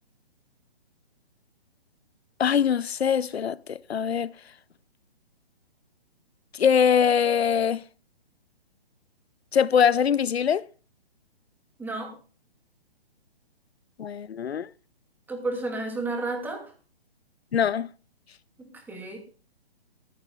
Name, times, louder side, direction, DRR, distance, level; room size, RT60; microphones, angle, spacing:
voice 1, 2.4-4.3 6.5-7.8 9.5-10.7 14.0-14.7 17.5-17.9, left 7 dB, 85° left, 0.7 m, -23 dB
voice 2, 11.8-12.1 15.3-16.6 18.6-19.2, right 2 dB, 5° right, 2.8 m, -32 dB
19.5 x 15.0 x 2.4 m
hypercardioid pair, 145°, 31 cm